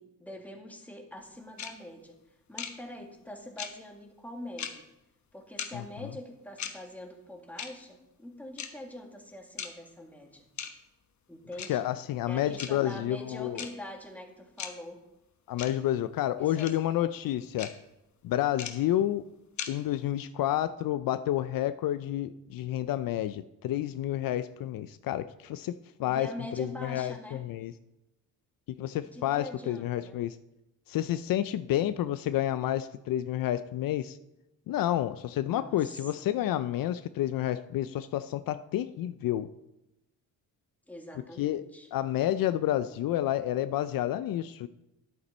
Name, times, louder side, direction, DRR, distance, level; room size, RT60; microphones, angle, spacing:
voice 1, 0.0-2.2 2.5-4.8 5.3-10.5 11.3-11.8 12.3-15.0 16.4-16.7 26.1-27.4 29.0-30.2 35.5-36.3 40.9-41.9, left 1 dB, 5° left, 2 dB, 1.8 m, -44 dB
sound 1, 1.6-1.7 2.6-2.7 3.6-3.7 4.6-4.7 5.6-5.7 6.6-6.7 7.6-7.7 8.6-8.7 9.6-9.7 10.6-10.7 11.6-11.7 12.6-12.7 13.6-13.7 14.6-14.7 15.6-15.7 16.6-16.7 17.6-17.7 18.6-18.7 19.6-19.7, left 8 dB, 55° left, 1.1 m, -36 dB
voice 2, 5.7-6.1 11.7-13.6 15.5-17.7 18.2-19.2 19.7-25.7 26.0-26.3 26.6-27.7 28.8-30.4 30.9-34.2 34.7-39.5 41.4-41.6 41.9-44.7, left 12 dB, 70° left, 13 dB, 0.5 m, -30 dB
11.0 x 8.7 x 4.2 m, 0.90 s
cardioid pair, 110°, 35 cm